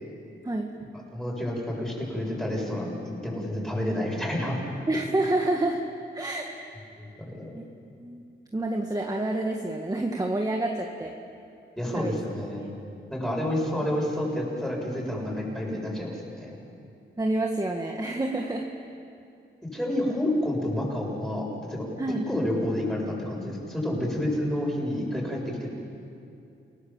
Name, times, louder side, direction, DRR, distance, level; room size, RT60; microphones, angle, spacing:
voice 1, 1.1-3.0 3.2-4.6 7.0-7.5 11.8-12.6 13.1-16.6 19.6-21.9 22.3-25.7, left 1 dB, ahead, -3 dB, 7.6 m, -29 dB
voice 2, 4.9-5.8 6.1-6.5 7.5-7.6 8.0-8.2 8.5-11.2 11.9-12.1 12.6-12.7 17.2-18.7 22.0-22.3, right 2 dB, 20° right, 1 dB, 1.8 m, -28 dB
29.5 x 18.0 x 7.5 m, 2.6 s
cardioid pair, 85°, 20 cm